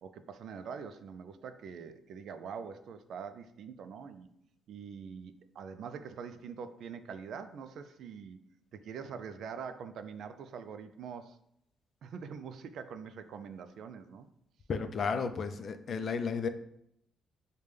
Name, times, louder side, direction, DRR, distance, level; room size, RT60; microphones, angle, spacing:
voice 1, 0.0-4.3 4.7-8.4 8.7-11.4 12.0-14.3, right 6 dB, 70° right, 9 dB, 0.3 m, -44 dB
voice 2, 14.7-16.5, left 5 dB, 50° left, 9 dB, 0.3 m, -33 dB
5.1 x 2.1 x 3.2 m, 0.74 s
cardioid pair, 90°, 0 cm